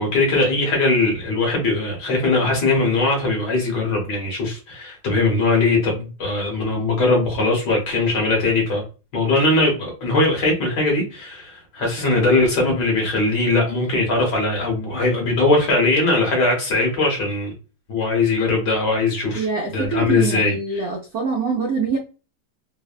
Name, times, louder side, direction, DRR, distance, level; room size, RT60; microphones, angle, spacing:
voice 1, 0.0-8.8 9.1-17.5 17.9-19.5 19.7-20.8, left 2 dB, 60° left, 1.3 m, -20 dB
voice 2, 19.4-22.0, right 4 dB, 75° right, 0.9 m, -24 dB
3.4 x 2.0 x 2.4 m
omnidirectional pair, 2.3 m